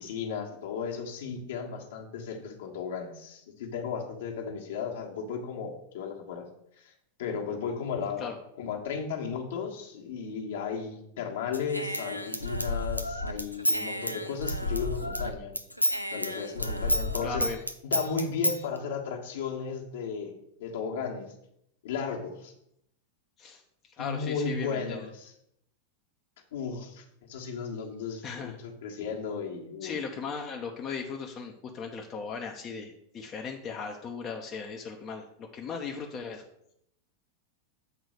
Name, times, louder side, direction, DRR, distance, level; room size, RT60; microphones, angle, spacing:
voice 1, 0.0-6.4 6.8-6.9 7.2-8.3 8.6-15.6 16.1-17.5 17.8-20.3 20.6-21.3 21.8-22.5 24.0-25.3 26.5-30.0, left 6 dB, 60° left, 1 dB, 1.5 m, -35 dB
Human voice / Scissors, 11.5-15.3 15.6-18.6, left 1 dB, 90° left, 0.5 m, -30 dB
voice 2, 17.2-17.6 23.4-23.6 24.0-25.1 28.2-28.6 29.8-36.4, left 5 dB, 30° left, 2 dB, 0.8 m, -37 dB
8.2 x 4.0 x 6.3 m, 0.77 s
figure-of-eight pair, 90°, 0 cm